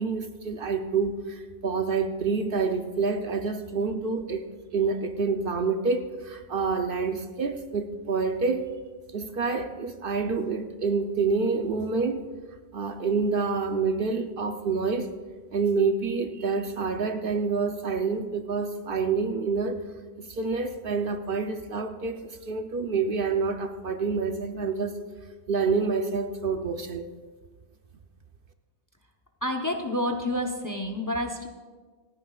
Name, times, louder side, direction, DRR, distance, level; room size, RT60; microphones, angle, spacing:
voice 1, 0.0-4.4 4.7-8.7 9.1-12.2 12.7-15.1 15.5-19.8 20.2-25.0 25.5-27.1, right 4 dB, 55° right, 7 dB, 0.8 m, -27 dB
voice 2, 29.4-31.5, left 1 dB, 20° left, 4 dB, 0.7 m, -29 dB
27.5 x 9.6 x 2.4 m, 1.4 s
omnidirectional pair, 1.2 m